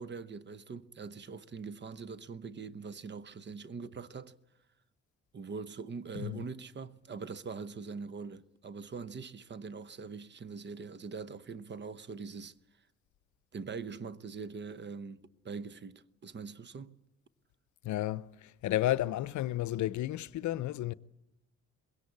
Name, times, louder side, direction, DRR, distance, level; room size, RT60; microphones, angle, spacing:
voice 1, 0.0-4.4 5.3-12.6 13.5-17.0, right 5 dB, 35° right, 0.9 m, -43 dB
voice 2, 17.8-20.9, left 14 dB, 70° left, 0.7 m, -32 dB
21.5 x 17.0 x 8.6 m
cardioid pair, 90°, 30 cm